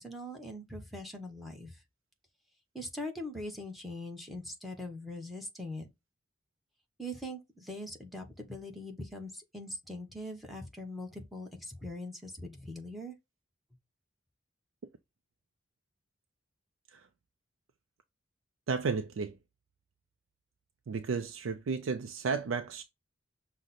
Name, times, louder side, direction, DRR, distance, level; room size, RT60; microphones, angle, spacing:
voice 1, 0.0-1.8 2.7-5.9 7.0-13.1, left 1 dB, ahead, 0.9 m, -42 dB
voice 2, 18.7-19.4 20.9-22.8, right 5 dB, 85° right, 0.4 m, -33 dB
6.1 x 2.1 x 4.0 m
head